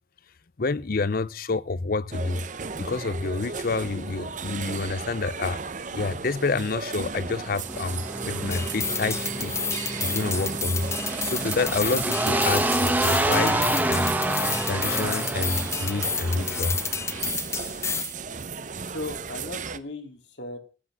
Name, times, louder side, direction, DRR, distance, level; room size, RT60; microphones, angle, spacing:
voice 1, 0.6-2.4 2.8-5.6 5.9-9.6 10.0-10.9 11.2-14.1 14.7-16.8, left 3 dB, 55° left, 0.6 m, -28 dB
sound 1, 2.1-19.8, right 5 dB, 45° right, 0.8 m, -35 dB
sound 2, 7.6-17.3, right 1 dB, 10° right, 1.2 m, -28 dB
sound 3, 8.5-18.1, left 5 dB, 15° left, 0.8 m, -31 dB
voice 2, 18.8-20.6, left 2 dB, 75° left, 2.6 m, -37 dB
18.0 x 8.3 x 6.1 m
head